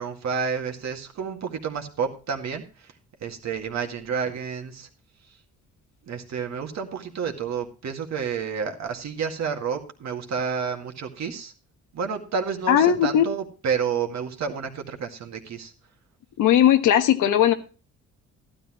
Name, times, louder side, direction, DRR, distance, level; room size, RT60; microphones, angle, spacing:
voice 1, 0.0-2.9 3.2-4.9 5.3-5.4 6.0-11.5 11.9-15.7, right 6 dB, 60° right, 4 dB, 2.1 m, -30 dB
voice 2, 12.7-13.2 16.4-17.5, left 10 dB, 85° left, 7 dB, 1.3 m, -18 dB
13.0 x 12.0 x 3.0 m, 0.35 s
cardioid pair, 90°, 30 cm